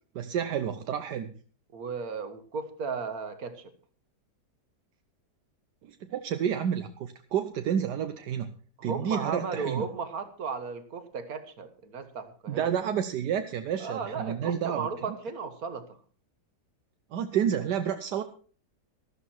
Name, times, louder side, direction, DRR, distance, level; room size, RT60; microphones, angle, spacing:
voice 1, 0.1-1.3 5.8-8.5 8.8-9.8 12.5-14.9 17.1-18.2, right 8 dB, 80° right, 8 dB, 1.4 m, -30 dB
voice 2, 1.7-3.7 8.8-12.7 13.8-15.9, right 5 dB, 60° right, 9 dB, 1.9 m, -35 dB
13.0 x 12.5 x 4.4 m, 0.40 s
omnidirectional pair, 1.8 m